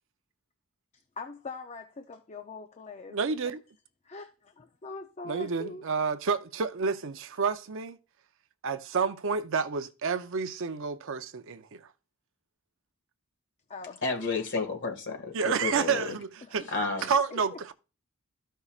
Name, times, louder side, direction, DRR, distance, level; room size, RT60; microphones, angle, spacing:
voice 1, 1.2-3.2 4.0-5.8 13.7-14.0 16.4-16.7 17.3-17.4, left 3 dB, 30° left, 0.5 m, -42 dB
voice 2, 3.1-3.6 5.2-8.0 8.6-11.8 15.3-16.7 17.0-17.7, right 5 dB, 60° right, 0.6 m, -29 dB
voice 3, 14.0-16.2 16.7-17.1, left 4 dB, 55° left, 1.8 m, -31 dB
14.0 x 5.5 x 2.4 m
head